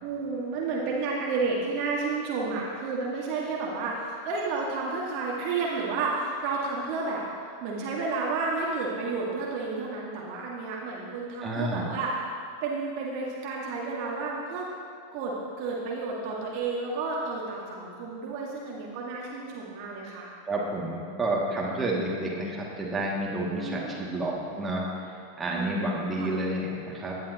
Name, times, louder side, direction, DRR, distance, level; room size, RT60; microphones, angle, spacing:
voice 1, 0.0-7.2 7.6-12.1 12.6-14.7 15.1-20.3 23.5-23.9 25.5-26.3, right 4 dB, 45° right, -4 dB, 1.9 m, -31 dB
voice 2, 11.4-11.9 20.5-27.2, right 1 dB, 15° right, -4 dB, 2.4 m, -30 dB
17.0 x 10.5 x 3.0 m, 2.4 s
figure-of-eight pair, 90°, 0 cm